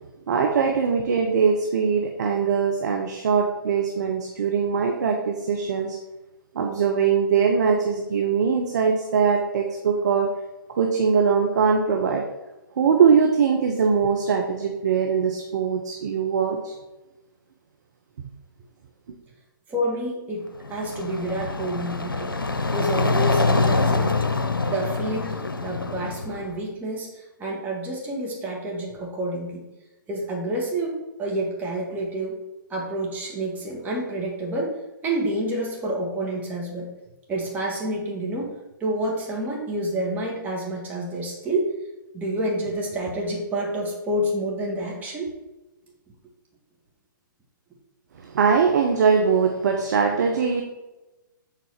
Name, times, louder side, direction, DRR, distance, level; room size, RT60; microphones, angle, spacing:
voice 1, 0.3-6.0 6.5-10.3 10.8-12.2 12.8-16.7 48.2-50.6, right 6 dB, 55° right, 3 dB, 1.0 m, -21 dB
voice 2, 19.7-22.3 22.7-24.2 24.7-29.6 30.1-32.4 32.7-34.7 35.0-36.9 37.3-38.5 38.8-41.7 42.1-45.3, right 1 dB, 15° right, -3 dB, 2.0 m, -28 dB
sound 1, 20.5-26.6, left 3 dB, 90° left, 0.7 m, -25 dB
7.5 x 4.1 x 5.8 m, 1.0 s
figure-of-eight pair, 130°, 11 cm